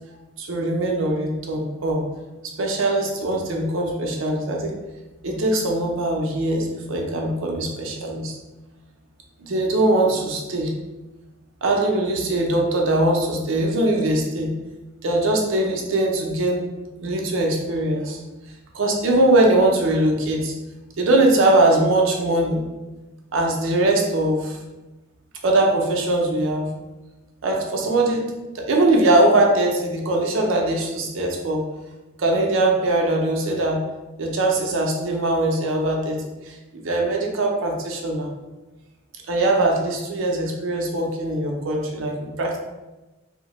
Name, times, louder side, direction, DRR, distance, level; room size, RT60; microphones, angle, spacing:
voice 1, 0.4-2.0 2.6-4.7 5.2-8.3 9.4-10.7 11.6-14.5 15.0-16.6 17.0-18.2 18.7-20.5 21.0-22.7 23.3-24.6 25.4-26.7 27.4-28.3 28.5-31.6 32.2-33.8 34.2-36.2 36.4-38.3 39.3-42.6, right 2 dB, 70° right, 1 dB, 0.5 m, -21 dB
2.7 x 2.1 x 2.9 m, 1.1 s
head